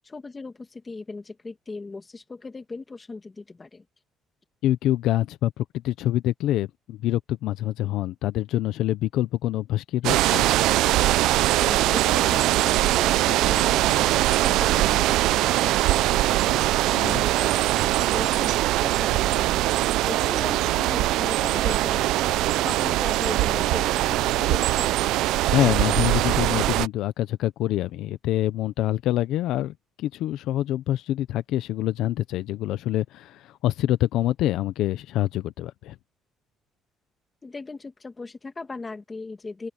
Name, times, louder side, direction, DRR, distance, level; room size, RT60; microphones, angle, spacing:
voice 1, 0.1-3.9 11.6-16.6 17.0-19.6 20.1-22.3 22.6-24.9 37.4-39.7, left 3 dB, 20° left, 1.8 m, -38 dB
voice 2, 4.6-10.5 16.9-17.2 25.5-36.0, left 13 dB, 75° left, 0.7 m, -26 dB
sound 1, 10.0-26.9, right 16 dB, 90° right, 0.4 m, -22 dB
open air
cardioid pair, 160°, 0 cm